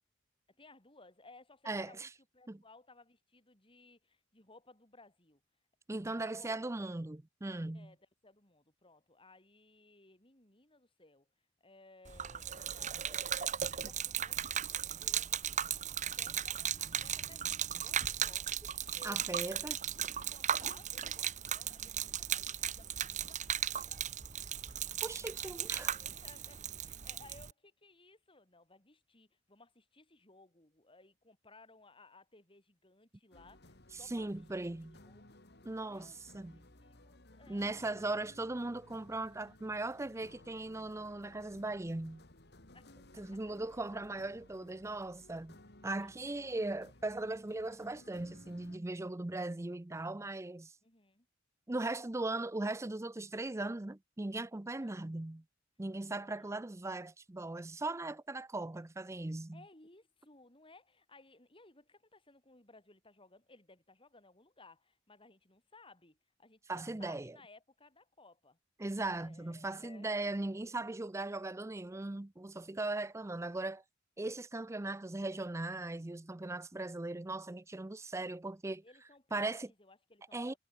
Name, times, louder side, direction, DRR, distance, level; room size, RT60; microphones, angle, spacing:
voice 1, 0.5-5.4 6.0-6.7 7.7-11.3 11.6-18.5 18.9-19.8 20.1-24.6 25.3-34.3 34.6-34.7 35.0-35.4 35.8-38.0 42.7-43.0 43.3-43.4 46.0-46.7 47.6-47.9 50.8-51.3 54.8-55.1 56.1-56.6 59.5-68.6 69.2-70.3 72.7-73.1 78.8-80.6, left 3 dB, 25° left, 6.7 m, -61 dB
voice 2, 1.7-2.1 2.5-2.6 5.9-7.9 19.0-19.8 25.0-26.0 34.1-35.0 35.6-36.6 37.5-42.2 43.2-50.7 51.7-55.4 55.8-59.6 66.7-67.4 68.8-73.8 74.2-78.8 79.3-79.7 80.3-80.5, right 2 dB, 15° right, 0.5 m, -39 dB
Gurgling / Liquid, 12.0-27.5, right 9 dB, 40° right, 1.2 m, -37 dB
sound 1, 33.3-48.8, left 1 dB, 55° left, 4.2 m, -59 dB
head